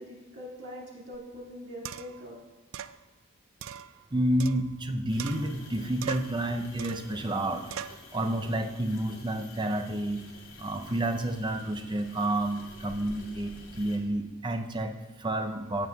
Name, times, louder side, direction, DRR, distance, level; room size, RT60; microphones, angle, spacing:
voice 1, 0.0-2.4, equal, 60° right, -5 dB, 2.2 m, -43 dB
sound 1, 1.1-1.2 1.8-2.2 2.7-3.0 3.6-4.9 5.2-5.7 6.0-6.4 6.8-7.1 7.7-8.0, right 8 dB, 85° right, 0.4 m, -40 dB
voice 2, 4.1-10.3 10.6-15.9, right 1 dB, 25° right, 6 dB, 0.6 m, -30 dB
sound 2, 5.1-14.0, left 2 dB, 75° left, 2.5 m, -50 dB
14.5 x 7.6 x 2.4 m, 1.3 s
head